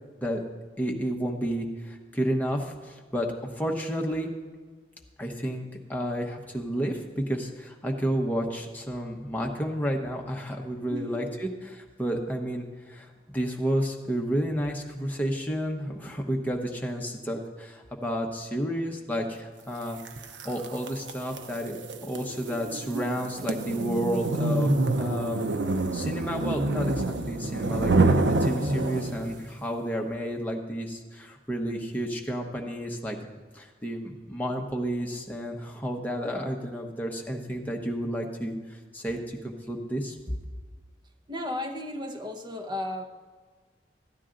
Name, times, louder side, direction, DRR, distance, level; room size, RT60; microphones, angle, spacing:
voice 1, 0.8-3.3 3.6-4.3 5.2-20.0 20.4-24.7 24.9-25.4 25.9-33.2 33.5-40.2, equal, 10° left, 1 dB, 0.9 m, -31 dB
voice 2, 10.9-11.2 41.3-43.1, left 1 dB, 25° right, 4 dB, 0.8 m, -34 dB
sound 1, 20.1-29.4, right 2 dB, 80° right, 0.6 m, -27 dB
13.5 x 9.2 x 3.8 m, 1.5 s
head